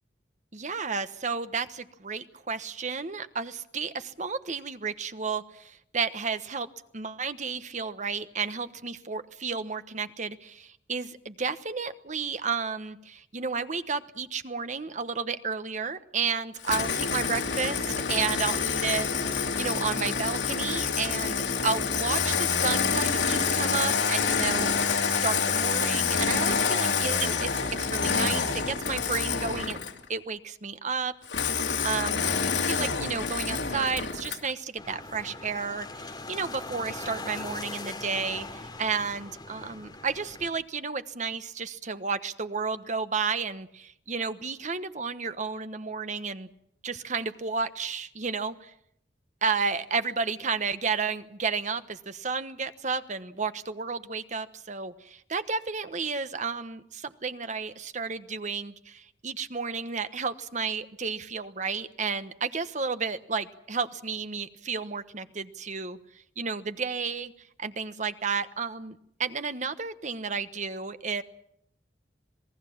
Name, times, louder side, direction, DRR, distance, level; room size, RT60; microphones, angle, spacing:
voice 1, 0.5-6.7 6.9-24.7 25.0-27.6 27.9-29.8 30.1-32.3 32.6-46.5 46.8-48.7 49.4-66.0 66.4-67.3 67.6-71.2, right 5 dB, 45° right, 11 dB, 1.1 m, -32 dB
Engine starting, 16.6-30.0 31.3-34.5, left 5 dB, 85° left, 2.7 m, -27 dB
sound 1, 34.8-40.5, left 2 dB, 25° left, 3.2 m, -40 dB
27.0 x 19.0 x 7.2 m, 0.72 s
head